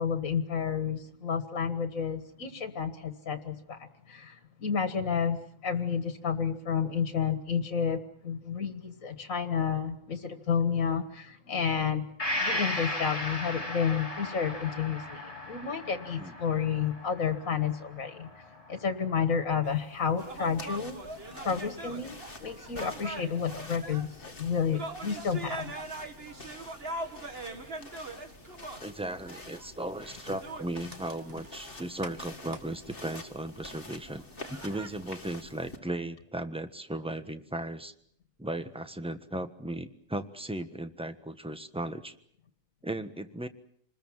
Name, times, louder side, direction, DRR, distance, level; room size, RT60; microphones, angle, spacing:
voice 1, 0.0-18.4 18.7-21.0 21.4-25.8, left 7 dB, 75° left, 8 dB, 2.0 m, -31 dB
Gong, 12.2-19.8 20.2-20.3, left 1 dB, 25° left, 3.4 m, -37 dB
sound 1, 19.6-34.9, right 2 dB, 45° right, 2.3 m, -43 dB
sound 2, 20.2-35.8, left 2 dB, 40° left, 2.4 m, -48 dB
voice 2, 28.8-37.9 38.4-42.1 42.8-43.5, right 1 dB, 5° right, 9 dB, 1.3 m, -36 dB
27.5 x 20.5 x 7.5 m, 0.65 s
omnidirectional pair, 1.4 m